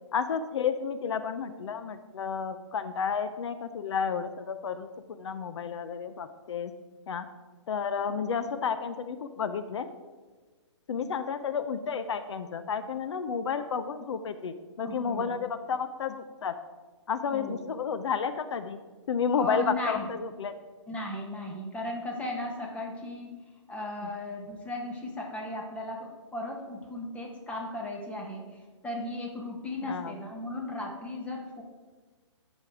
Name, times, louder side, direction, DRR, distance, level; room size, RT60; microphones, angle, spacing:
voice 1, 0.1-6.7 7.1-7.2 7.7-9.9 10.9-16.5 17.1-18.8 19.1-20.5 24.0-24.1 29.8-30.2, left 6 dB, 65° left, 11 dB, 0.6 m, -31 dB
voice 2, 14.8-15.4 17.3-17.6 19.4-20.1 20.9-23.4 23.7-28.4 28.8-31.6, left 1 dB, 10° left, 0 dB, 1.3 m, -36 dB
12.5 x 5.3 x 4.8 m, 1.4 s
hypercardioid pair, 145°, 16 cm